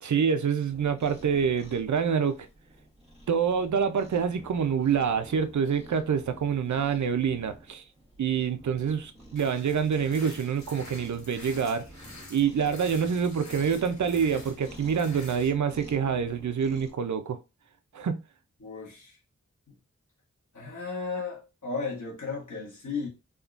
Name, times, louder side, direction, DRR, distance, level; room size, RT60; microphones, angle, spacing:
voice 1, 0.0-2.5 3.3-7.8 8.2-11.8 12.3-17.4 17.9-18.2, right 7 dB, 75° right, 0.4 m, -26 dB
Cat, 0.7-16.9, right 1 dB, 20° right, 1.0 m, -50 dB
sound 1, 9.4-15.5, left 2 dB, 70° left, 1.0 m, -47 dB
voice 2, 18.6-19.2 20.5-23.1, left 4 dB, 90° left, 1.2 m, -35 dB
3.6 x 2.2 x 2.4 m
wide cardioid pair, 60°, 29 cm